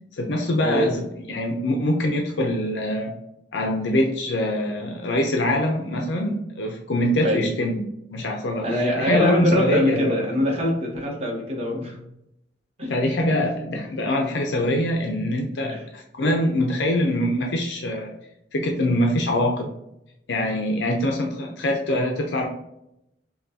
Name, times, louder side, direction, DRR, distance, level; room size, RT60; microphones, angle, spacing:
voice 1, 0.2-3.1 3.5-7.8 8.1-10.4 12.9-18.1 18.5-19.7 20.3-22.5, left 1 dB, 75° left, 2 dB, 0.6 m, -24 dB
voice 2, 8.6-12.0 12.8-12.9 13.4-13.5 15.7-15.8, equal, 35° right, -2 dB, 0.8 m, -23 dB
5.6 x 2.3 x 2.7 m, 0.81 s
head